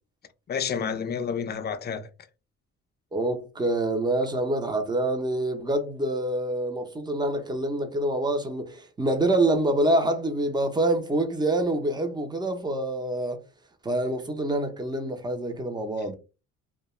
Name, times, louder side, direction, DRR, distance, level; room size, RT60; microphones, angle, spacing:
voice 1, 0.5-2.1, left 6 dB, 35° left, 0.4 m, -29 dB
voice 2, 3.1-13.4 13.8-16.1, right 1 dB, 15° right, 0.6 m, -26 dB
2.3 x 2.2 x 3.0 m
cardioid pair, 90°, 30 cm